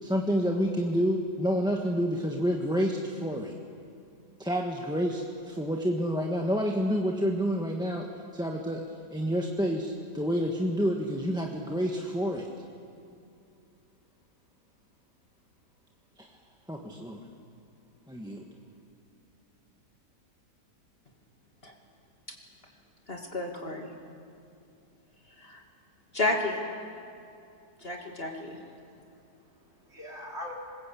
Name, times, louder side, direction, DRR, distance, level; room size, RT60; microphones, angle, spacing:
voice 1, 0.0-3.5 4.4-8.8 9.1-12.5 16.2-16.3 16.7-17.2 18.1-18.5, equal, 5° right, 1 dB, 1.3 m, -29 dB
voice 2, 23.1-23.9 25.4-25.6 26.1-26.6 27.8-28.6, left 2 dB, 35° left, 1 dB, 2.6 m, -31 dB
voice 3, 27.8-28.1 28.7-30.5, left 1 dB, 40° right, -2 dB, 4.4 m, -45 dB
25.5 x 21.5 x 8.5 m, 2.5 s
omnidirectional pair, 1.7 m